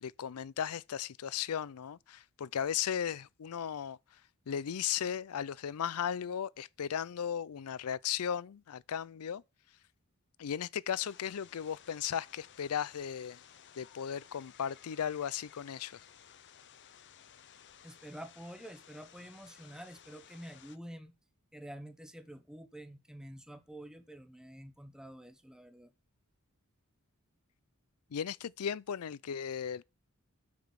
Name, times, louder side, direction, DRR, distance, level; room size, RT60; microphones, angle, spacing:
voice 1, 0.0-4.0 4.5-9.4 10.4-13.4 13.8-16.0 28.1-29.8, left 8 dB, 85° left, 0.4 m, -36 dB
sound 1, 10.9-20.8, left 9 dB, 55° left, 0.7 m, -57 dB
voice 2, 17.8-21.1 21.5-25.9, right 1 dB, 5° right, 1.0 m, -48 dB
8.4 x 6.0 x 6.3 m
head